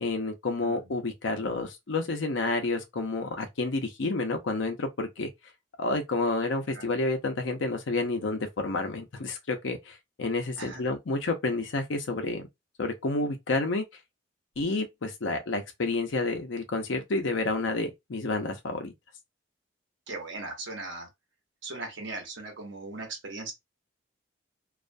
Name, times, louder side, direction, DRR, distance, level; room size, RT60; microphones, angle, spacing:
voice 1, 0.0-5.3 5.8-12.4 12.8-13.8 14.6-18.9, left 3 dB, 80° left, 0.6 m, -30 dB
voice 2, 20.1-21.1 21.6-23.5, right 3 dB, 80° right, 0.9 m, -38 dB
2.4 x 2.2 x 2.5 m
head